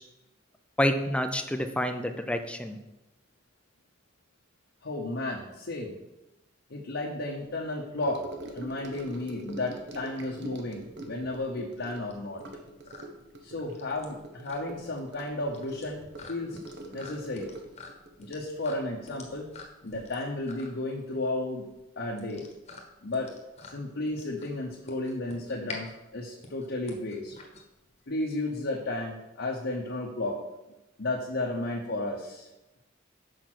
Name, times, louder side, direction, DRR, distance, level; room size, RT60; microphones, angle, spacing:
voice 1, 0.8-2.8, left 1 dB, 5° left, 7 dB, 0.5 m, -28 dB
voice 2, 4.8-6.0 6.7-8.2 8.5-12.4 13.4-16.0 16.3-16.6 16.9-17.5 18.2-19.5 19.8-21.6 22.0-22.5 23.0-23.3 23.6-27.4 28.1-30.4 31.0-32.5, left 2 dB, 60° left, -2 dB, 0.9 m, -33 dB
Gurgling / Sink (filling or washing) / Trickle dribble, 8.0-19.6 19.9-20.2 20.5-20.6, right 1 dB, 60° right, 1.0 m, -44 dB
sound 1, 10.5-28.2, left 3 dB, 35° left, 1.1 m, -48 dB
6.3 x 5.0 x 6.1 m, 0.98 s
head